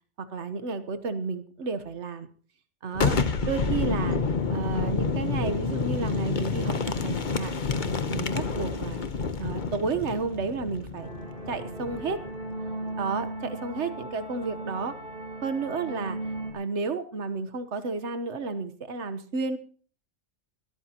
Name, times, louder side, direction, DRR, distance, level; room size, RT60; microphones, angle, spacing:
voice 1, 0.2-2.3 2.8-3.2 3.4-4.2 4.5-7.5 8.1-9.0 9.4-11.1 11.5-12.2 13.0-14.9 15.4-16.2 16.5-19.6, right 4 dB, 75° right, 11 dB, 1.5 m, -31 dB
Boom, 2.9-12.5, left 4 dB, 45° left, 1.1 m, -29 dB
sound 1, 11.0-16.5, right 2 dB, 50° right, 3.3 m, -37 dB
23.0 x 13.0 x 2.9 m, 0.41 s
omnidirectional pair, 1.2 m